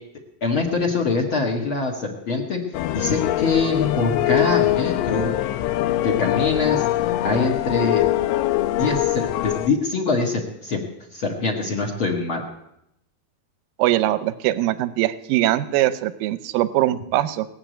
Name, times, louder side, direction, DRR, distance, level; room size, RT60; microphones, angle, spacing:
voice 1, 0.4-2.6 2.9-5.3 6.0-6.9 7.2-8.1 8.8-10.8 11.1-12.4, left 3 dB, 45° left, 0 dB, 1.8 m, -23 dB
sound 1, 2.7-9.7, left 15 dB, 80° left, 2.5 m, -23 dB
voice 2, 13.8-17.5, right 14 dB, 75° right, 12 dB, 2.1 m, -21 dB
19.5 x 7.4 x 9.1 m, 0.80 s
omnidirectional pair, 4.6 m